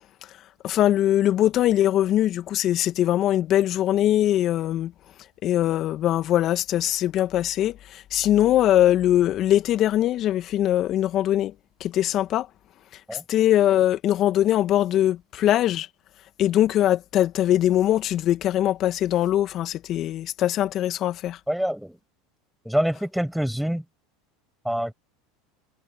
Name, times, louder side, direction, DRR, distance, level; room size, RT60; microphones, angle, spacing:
voice 1, 0.6-4.9 5.4-11.5 11.8-12.5 13.1-15.9 16.4-21.4, left 12 dB, 45° left, 2.0 m, -22 dB
voice 2, 21.5-22.0 22.6-23.8 24.6-24.9, equal, ahead, 6.4 m, -25 dB
hypercardioid pair, 90°, 0 cm